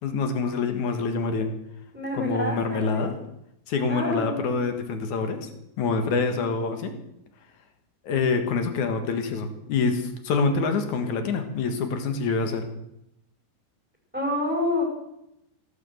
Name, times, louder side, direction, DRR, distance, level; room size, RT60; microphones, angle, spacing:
voice 1, 0.0-1.5 2.1-3.1 3.7-5.5 5.8-6.9 8.0-12.7, left 4 dB, 55° left, 6 dB, 2.5 m, -26 dB
voice 2, 1.9-3.1 3.9-4.4 14.1-14.8, left 1 dB, ahead, 0 dB, 4.6 m, -28 dB
17.0 x 9.4 x 7.9 m, 0.82 s
omnidirectional pair, 5.0 m